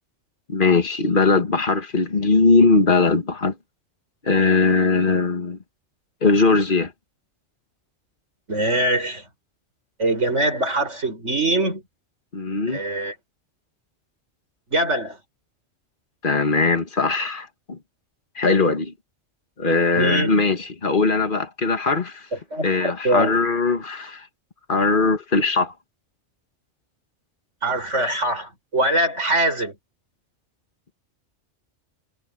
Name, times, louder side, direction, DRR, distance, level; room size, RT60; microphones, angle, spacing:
voice 1, 0.5-3.5 4.2-5.6 6.2-6.9 12.3-12.8 16.2-17.8 18.4-18.9 19.6-22.3 22.6-24.3 24.7-25.7, left 3 dB, 45° left, 2.1 m, -20 dB
voice 2, 8.5-9.2 10.0-11.8 12.7-13.1 14.7-15.2 19.9-20.3 22.5-23.6 27.6-29.7, right 1 dB, 85° right, 7.0 m, -23 dB
omnidirectional pair, 1.2 m